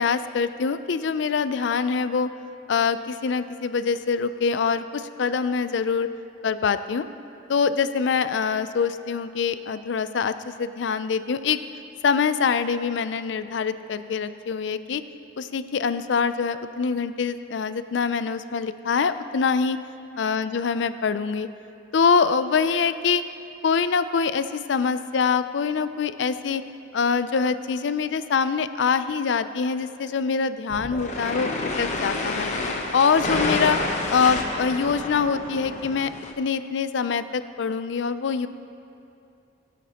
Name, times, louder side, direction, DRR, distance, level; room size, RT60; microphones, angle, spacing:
voice 1, 0.0-2.3 2.7-6.1 6.4-7.0 7.5-11.6 12.0-15.0 15.4-19.8 20.2-21.5 21.9-23.2 23.6-26.6 26.9-32.5 32.9-33.8 34.1-38.5, left 5 dB, 80° left, 12 dB, 0.4 m, -24 dB
sound 1, 30.7-36.3, left 2 dB, 40° left, 0.9 m, -29 dB
19.0 x 8.3 x 2.9 m, 2.6 s
head